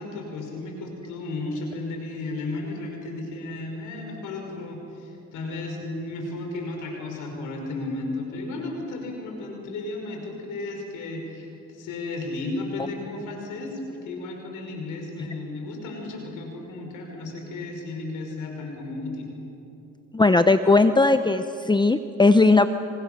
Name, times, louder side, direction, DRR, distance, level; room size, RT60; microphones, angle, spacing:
voice 1, 0.0-19.3, left 2 dB, 85° left, 2 dB, 5.5 m, -34 dB
voice 2, 20.1-22.7, left 3 dB, 15° left, 10 dB, 0.8 m, -18 dB
27.5 x 27.0 x 6.9 m, 2.9 s
cardioid pair, 90°, 30 cm